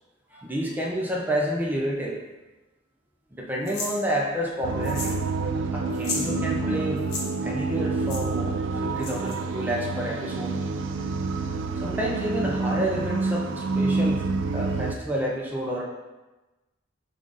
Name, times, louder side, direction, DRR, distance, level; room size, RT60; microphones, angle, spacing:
voice 1, 0.3-2.2 3.3-5.2 5.7-7.0 7.4-10.5 11.8-15.8, equal, 10° right, -3 dB, 0.6 m, -29 dB
sound 1, 3.7-3.9 4.8-5.2 5.5-5.6 5.9-6.3 7.0-7.2 8.1-8.2 9.0-9.4, left 3 dB, 55° left, 1.0 m, -33 dB
sound 2, 4.6-15.0, right 3 dB, 75° right, 0.3 m, -28 dB
4.9 x 2.5 x 3.9 m, 1.1 s
head